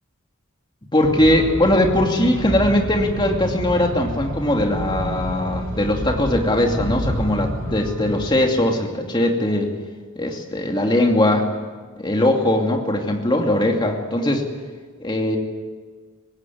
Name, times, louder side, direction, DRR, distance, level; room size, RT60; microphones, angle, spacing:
voice 1, 0.9-9.7 10.2-11.5 12.0-14.4 15.0-15.4, left 1 dB, 20° left, 2 dB, 2.6 m, -20 dB
sound 1, 1.0-8.3, equal, 65° right, 8.0 m, -28 dB
24.5 x 20.0 x 9.4 m, 1.5 s
head